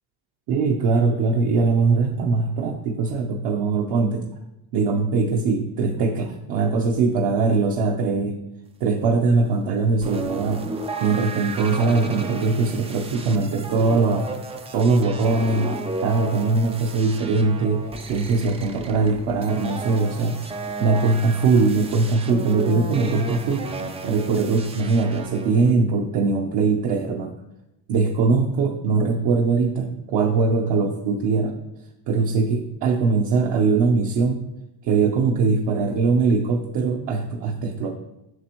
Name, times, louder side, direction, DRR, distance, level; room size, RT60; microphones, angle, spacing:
voice 1, 0.5-4.2 4.7-8.4 8.8-10.6 11.0-14.4 14.7-15.7 16.0-17.8 18.1-20.4 20.8-23.7 24.0-27.3 27.9-31.5 32.1-34.4 34.8-37.9, right 4 dB, 60° right, 0 dB, 0.9 m, -21 dB
sound 1, 10.0-25.7, right 3 dB, 15° right, 0.3 m, -34 dB
7.8 x 6.1 x 3.0 m, 0.92 s
cardioid pair, 150°, 46 cm